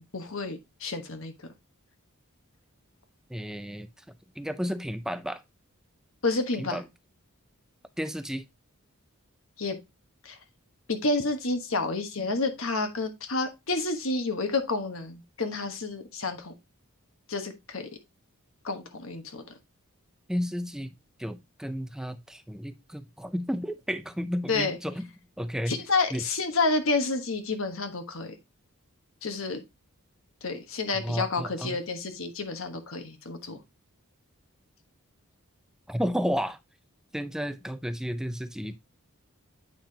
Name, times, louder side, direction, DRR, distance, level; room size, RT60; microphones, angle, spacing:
voice 1, 0.0-1.3 6.2-6.8 9.6-9.8 10.2-10.4 10.9-16.5 17.3-17.9 18.6-19.4 24.5-24.8 25.7-28.3 29.2-29.6 30.4-33.6, left 3 dB, 65° left, 1.2 m, -29 dB
voice 2, 3.3-3.9 4.4-5.4 6.6-6.8 8.0-8.4 20.3-25.1 25.4-25.7 26.1-26.2 30.9-31.8 35.9-36.6 37.1-38.8, equal, ahead, 0.4 m, -32 dB
8.7 x 5.8 x 2.8 m
head